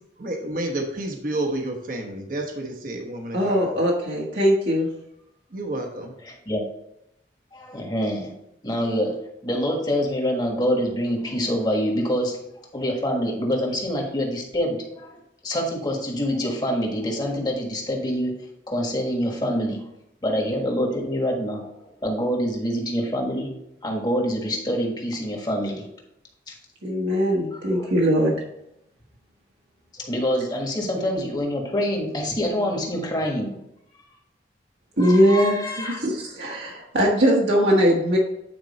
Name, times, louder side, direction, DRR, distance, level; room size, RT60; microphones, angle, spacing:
voice 1, 0.0-3.7 5.5-6.2, right 1 dB, 50° right, 2 dB, 1.1 m, -30 dB
voice 2, 3.3-4.9 26.8-28.4 35.0-38.2, equal, 75° right, -4 dB, 1.5 m, -21 dB
voice 3, 6.2-6.6 7.5-8.3 8.6-12.4 12.7-19.9 20.2-23.5 23.8-25.9 26.5-26.6 27.5-27.9 29.9-33.6 35.0-36.0, equal, 25° left, 0 dB, 1.5 m, -26 dB
9.0 x 4.5 x 4.2 m, 0.81 s
head